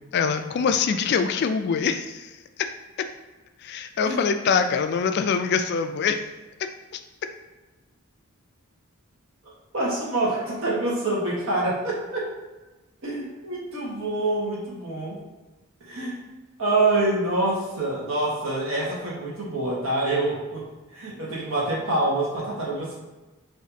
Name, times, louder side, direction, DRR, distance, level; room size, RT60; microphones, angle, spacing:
voice 1, 0.1-2.3 3.6-6.2, left 6 dB, 50° left, 8 dB, 0.3 m, -24 dB
voice 2, 9.7-12.3 13.0-15.2 15.9-16.2 16.6-20.6 20.9-23.0, right 2 dB, 70° right, -5 dB, 1.4 m, -26 dB
5.0 x 2.7 x 2.7 m, 1.2 s
head